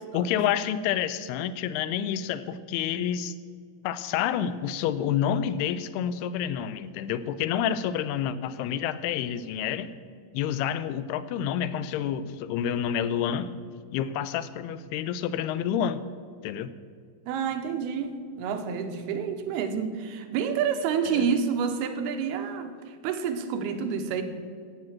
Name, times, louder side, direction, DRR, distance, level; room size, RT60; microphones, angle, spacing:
voice 1, 0.0-3.3 3.8-9.9 10.3-13.5 13.9-16.0 16.4-16.7 21.1-21.3, left 9 dB, 85° left, 14 dB, 2.7 m, -28 dB
voice 2, 17.3-24.2, right 7 dB, 80° right, 7 dB, 3.0 m, -29 dB
14.0 x 9.1 x 7.5 m, 2.1 s
omnidirectional pair, 4.5 m